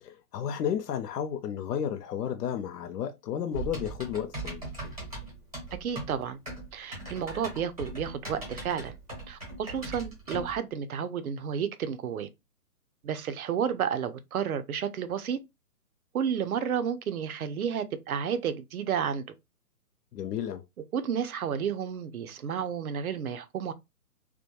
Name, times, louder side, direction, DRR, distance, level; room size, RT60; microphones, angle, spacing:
voice 1, 0.0-4.6 20.1-20.6, left 9 dB, 85° left, 0.5 m, -32 dB
Typing, 3.5-10.6, right 2 dB, 25° right, 0.7 m, -39 dB
voice 2, 5.8-6.4 6.7-9.0 9.3-12.3 13.0-15.4 16.1-19.2 20.9-23.7, right 8 dB, 65° right, 0.5 m, -31 dB
2.2 x 2.1 x 2.8 m
hypercardioid pair, 180°, 46 cm